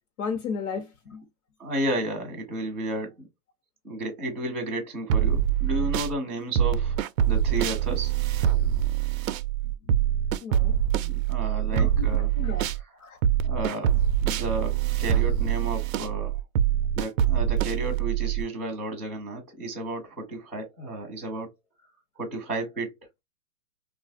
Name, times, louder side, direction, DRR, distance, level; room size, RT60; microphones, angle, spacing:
voice 1, 0.2-1.2 10.4-10.8 11.7-12.1 12.4-12.6 13.0-13.2, left 5 dB, 65° left, 0.9 m, -33 dB
voice 2, 1.6-3.3 3.8-7.0 7.3-8.1 11.0-12.3 12.6-12.9 13.4-16.4 17.0-21.5 22.2-22.9, right 1 dB, ahead, 0.4 m, -32 dB
sound 1, 5.1-6.1 6.6-12.8 13.2-18.4, right 10 dB, 65° right, 0.5 m, -24 dB
3.1 x 2.4 x 2.4 m
hypercardioid pair, 155°, 44 cm